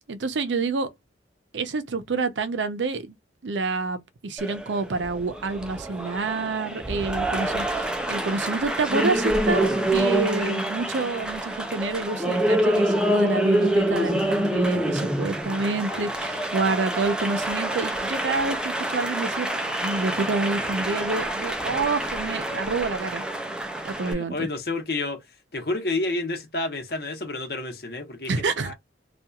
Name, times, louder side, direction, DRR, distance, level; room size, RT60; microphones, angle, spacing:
voice 1, 0.1-0.9 1.5-3.2 3.4-23.2 23.8-24.5 28.3-28.7, right 3 dB, 90° right, 0.6 m, -28 dB
Applause, 4.4-24.1, right 1 dB, 5° right, 0.4 m, -26 dB
voice 2, 24.0-25.2 25.5-28.3 28.6-28.7, left 2 dB, 55° left, 1.0 m, -30 dB
2.8 x 2.4 x 2.3 m
head